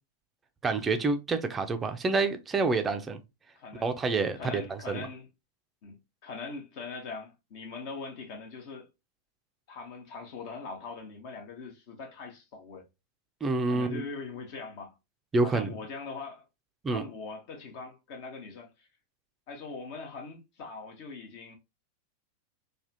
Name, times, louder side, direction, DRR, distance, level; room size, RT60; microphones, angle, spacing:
voice 1, 0.6-3.2 3.8-5.1 13.4-14.0 15.3-15.7 16.8-17.0, right 3 dB, 20° right, 0.5 m, -28 dB
voice 2, 3.6-3.9 4.3-5.3 5.8-8.9 9.7-12.8 13.7-14.9 15.4-16.4 16.9-18.9 19.5-21.6, left 4 dB, 45° left, 1.0 m, -41 dB
3.4 x 2.3 x 2.7 m
figure-of-eight pair, 90°, 0 cm